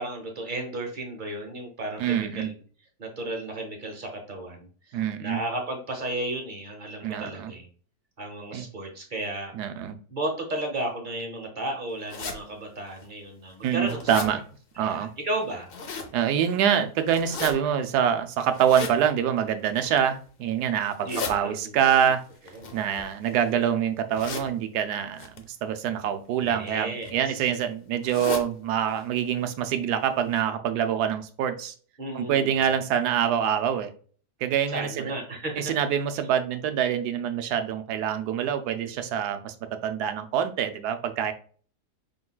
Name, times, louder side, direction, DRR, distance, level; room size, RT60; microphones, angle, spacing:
voice 1, 0.0-2.6 3.0-7.7 8.2-9.5 10.1-14.4 14.8-15.7 21.0-22.0 22.5-22.7 26.4-27.5 32.0-32.7 34.7-35.7, right 1 dB, 35° right, 3 dB, 0.9 m, -34 dB
voice 2, 2.0-2.5 4.9-5.4 7.0-7.5 8.5-8.6 9.5-10.0 13.6-14.4 14.8-15.1 16.1-22.2 22.7-25.3 25.6-31.7 32.1-33.9 34.4-35.1 35.6-39.5 39.8-41.3, right 9 dB, 75° right, 8 dB, 1.1 m, -25 dB
sound 1, 12.1-12.4 13.0-13.1 13.5-14.3 15.4-16.1 17.1-17.5 18.5-19.0 19.7-20.1 20.8-21.3 22.5-23.5 24.1-24.5 25.2-25.4 26.4-26.7 27.0-27.1 27.4-27.5 28.0-28.5 28.9-29.0 29.3-29.4 29.9-30.0 30.3-30.4, left 4 dB, 60° left, 0.6 m, -35 dB
5.2 x 3.8 x 2.2 m, 0.42 s
omnidirectional pair, 1.8 m